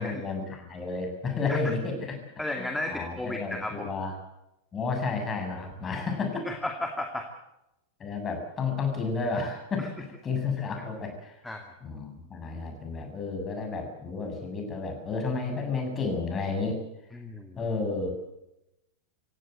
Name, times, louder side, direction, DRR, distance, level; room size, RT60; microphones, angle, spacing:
voice 1, 0.0-2.2 2.6-4.1 4.7-6.5 8.0-9.8 10.2-11.4 11.8-16.8 17.6-18.1, left 4 dB, 20° left, 4 dB, 7.4 m, -31 dB
voice 2, 2.4-3.9 6.4-7.3 9.8-9.9 11.4-11.7 17.1-17.6, left 1 dB, 5° left, 3 dB, 2.4 m, -34 dB
26.0 x 17.0 x 8.0 m, 0.89 s
figure-of-eight pair, 90°, 0 cm